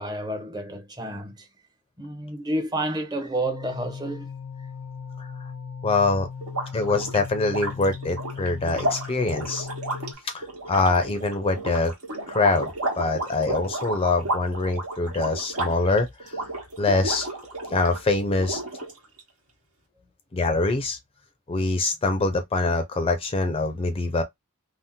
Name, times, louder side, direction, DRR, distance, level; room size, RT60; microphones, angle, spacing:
voice 1, 0.0-1.5 2.0-4.3, right 1 dB, 20° right, 0.6 m, -30 dB
sound 1, 3.4-10.1, left 6 dB, 90° left, 0.5 m, -38 dB
voice 2, 5.8-6.3 6.7-9.7 10.3-11.9 12.3-12.7 13.0-16.4 16.8-17.3 17.7-18.6 20.3-21.0 21.5-24.2, left 3 dB, 25° left, 0.4 m, -24 dB
sound 2, 6.4-18.0 18.4-19.2, right 1 dB, 80° right, 1.2 m, -32 dB
2.7 x 2.0 x 3.5 m
head